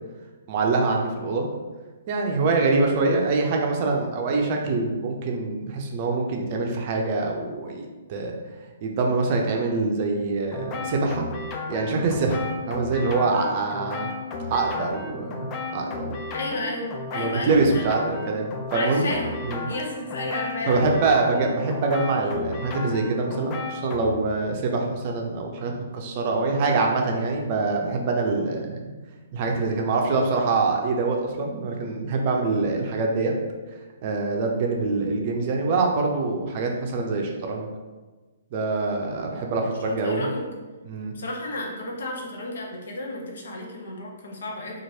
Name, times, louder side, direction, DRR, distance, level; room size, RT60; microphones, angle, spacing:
voice 1, 0.5-1.5 2.1-8.3 8.8-11.3 11.7-14.1 14.5-16.1 17.1-19.1 19.4-19.7 20.7-28.9 29.3-33.3 34.0-37.7 38.5-40.3 40.9-41.1, right 3 dB, 45° right, 1 dB, 0.5 m, -24 dB
sound 1, 10.5-24.1, left 3 dB, 30° left, 0.4 m, -34 dB
voice 2, 16.3-17.8 18.7-19.4 19.7-20.8 28.2-28.5 40.0-40.4 41.1-44.8, left 2 dB, 70° left, -1 dB, 0.7 m, -32 dB
3.0 x 2.5 x 2.8 m, 1.3 s
hypercardioid pair, 130°, 0 cm